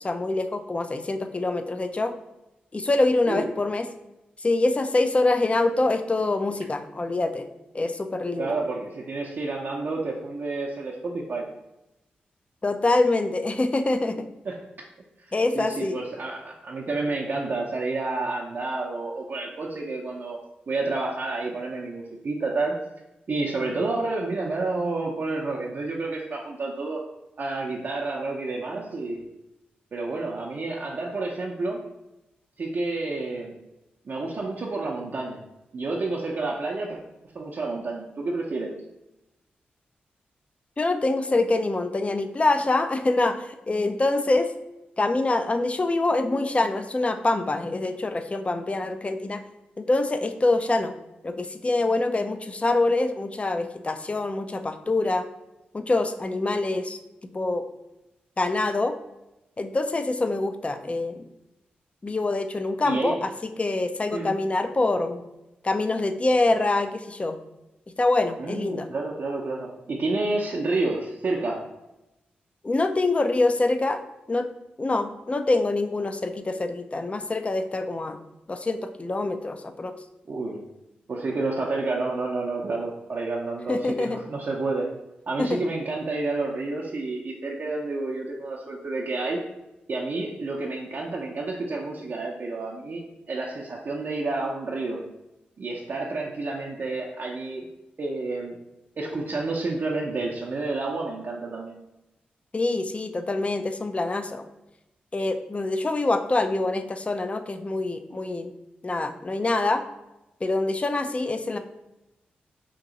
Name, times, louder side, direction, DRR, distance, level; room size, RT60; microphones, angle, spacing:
voice 1, 0.0-2.1 2.7-3.9 4.4-7.4 7.7-8.5 12.6-14.3 15.3-16.0 40.8-44.5 45.0-49.4 49.8-50.9 51.2-55.3 55.7-57.0 57.3-57.6 58.4-58.9 59.6-61.2 62.0-65.2 65.6-67.4 68.0-68.9 72.6-74.0 74.3-74.5 74.8-78.2 78.5-79.9 83.7-84.2 85.4-85.6 102.5-104.5 105.1-108.5 108.8-109.8 110.4-111.6, left 2 dB, 30° left, 7 dB, 0.4 m, -25 dB
voice 2, 8.4-11.5 14.4-14.6 15.2-20.4 20.7-22.8 23.3-27.0 27.4-29.2 29.9-31.8 32.6-33.5 34.1-35.4 35.7-37.0 37.3-38.7 62.8-63.2 64.1-64.3 68.4-71.6 80.3-80.6 81.1-84.9 85.3-89.4 89.9-93.0 93.3-95.0 95.6-97.7 98.0-98.6 99.0-101.8, right 3 dB, 55° right, -3 dB, 0.5 m, -29 dB
2.9 x 2.7 x 3.8 m, 0.93 s
supercardioid pair, 40°, 4 cm